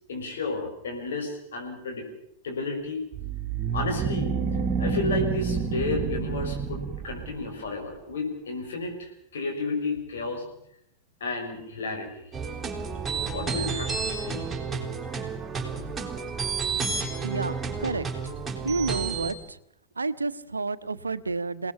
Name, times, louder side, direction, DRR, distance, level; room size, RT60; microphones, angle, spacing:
voice 1, 0.1-2.1 2.4-3.0 3.7-4.3 4.8-10.4 11.2-12.3 13.3-14.5, left 3 dB, 65° left, 2 dB, 6.4 m, -32 dB
sound 1, 3.1-7.5, right 6 dB, 30° right, 2.2 m, -28 dB
sound 2, 12.3-19.3, right 5 dB, 15° right, 4.4 m, -31 dB
voice 2, 17.2-18.1 18.6-19.4 20.0-21.7, right 3 dB, 75° right, 14 dB, 1.1 m, -30 dB
27.5 x 18.5 x 7.3 m, 0.75 s
figure-of-eight pair, 90°, 0 cm